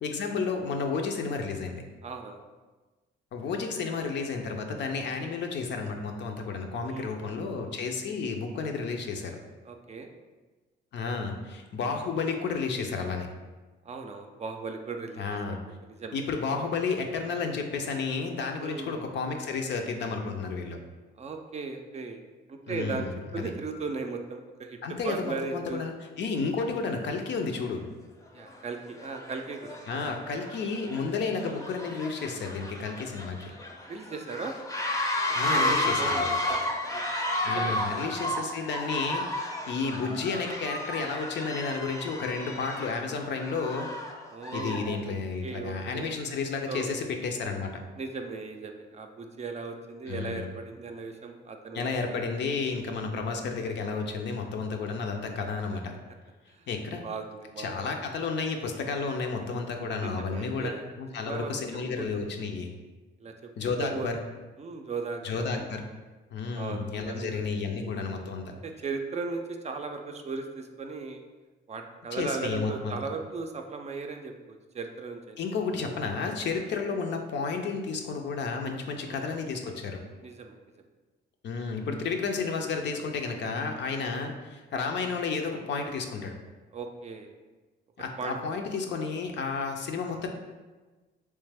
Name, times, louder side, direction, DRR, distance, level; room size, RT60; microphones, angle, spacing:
voice 1, 0.0-1.8 3.3-9.4 10.9-13.3 15.2-15.6 16.1-20.8 22.7-23.5 24.8-27.9 29.9-33.5 35.3-36.3 37.4-43.9 44.5-47.8 50.1-50.5 51.7-55.9 56.7-57.0 57.6-62.7 63.6-64.2 65.2-65.8 66.3-68.5 72.1-73.0 75.4-80.0 81.4-86.3 88.0-90.3, left 4 dB, 65° left, 4 dB, 0.5 m, -32 dB
voice 2, 2.0-2.4 6.8-7.4 9.6-10.1 13.8-15.2 15.8-16.2 18.6-19.1 21.1-22.2 22.5-23.1 23.3-24.8 25.0-25.8 28.3-29.8 33.9-34.5 35.3-37.0 37.5-37.8 44.3-45.2 45.4-46.2 46.7-46.9 48.0-52.0 56.5-56.7 57.0-57.8 60.0-60.9 61.2-61.5 62.0-62.1 63.2-63.3 63.8-64.1 64.6-65.2 65.5-65.6 66.5-67.4 68.5-71.2 71.7-75.4 79.0-79.3 80.2-80.6 86.7-87.3 88.2-88.4, right 4 dB, 35° right, 4 dB, 0.4 m, -37 dB
sound 1, 27.6-27.7 28.4-28.6 28.9-44.9, left 1 dB, 15° left, 0.6 m, -32 dB
3.2 x 3.2 x 3.4 m, 1.3 s
cardioid pair, 90°, 20 cm